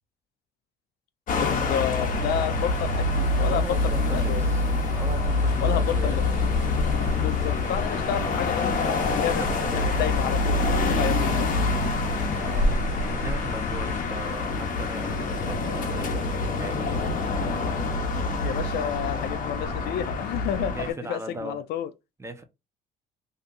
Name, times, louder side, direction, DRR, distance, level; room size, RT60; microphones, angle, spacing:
sound 1, 1.3-20.9, left 3 dB, 55° left, 0.8 m, -25 dB
voice 1, 1.4-3.7 4.0-4.5 5.6-6.2 7.2-8.7 9.0-9.4 9.7-10.7 11.0-11.5 18.4-21.9, left 9 dB, 70° left, 0.4 m, -30 dB
sound 2, 2.0-14.0, right 4 dB, 45° right, 1.0 m, -45 dB
voice 2, 3.5-4.6 5.0-6.2 9.2-9.9 12.3-16.9 20.7-21.6 22.2-22.4, right 2 dB, 15° right, 0.7 m, -38 dB
2.8 x 2.4 x 3.7 m
cardioid pair, 110°, 17 cm